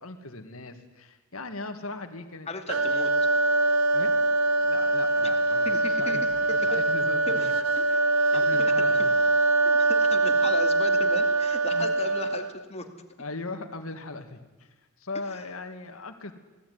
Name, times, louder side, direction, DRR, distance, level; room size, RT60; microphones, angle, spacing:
voice 1, 0.0-2.9 3.9-7.5 7.9-8.0 8.3-9.1 11.7-11.9 13.2-14.7 15.0-16.3, left 3 dB, 70° left, 7 dB, 2.2 m, -39 dB
voice 2, 2.5-3.1 5.6-6.2 6.5-6.8 7.3-7.5 7.8-7.9 8.3-8.7 9.6-12.9 15.3-15.4, left 3 dB, 30° left, 5 dB, 2.4 m, -36 dB
sound 1, 2.7-12.6, right 2 dB, 85° right, 1.4 m, -23 dB
24.0 x 17.5 x 9.6 m, 1.2 s
head